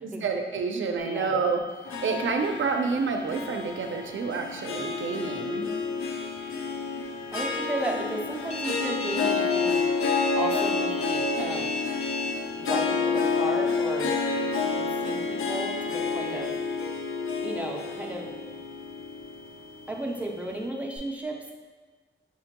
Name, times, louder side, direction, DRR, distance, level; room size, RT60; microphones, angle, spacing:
voice 1, 0.0-1.6 2.0-5.7, right 4 dB, 70° right, 4 dB, 0.4 m, -28 dB
sound 1, 1.0-21.0, left 2 dB, 65° left, 0.9 m, -53 dB
Harp, 1.8-20.3, left 4 dB, 85° left, 0.4 m, -29 dB
voice 2, 7.3-9.8 10.4-11.7 12.6-16.6 17.4-18.3 19.9-21.5, right 1 dB, 5° right, 0 dB, 0.4 m, -34 dB
Alarm, 8.5-12.3, left 3 dB, 35° left, 0.6 m, -34 dB
5.7 x 2.2 x 2.8 m, 1.4 s
wide cardioid pair, 175°, 21 cm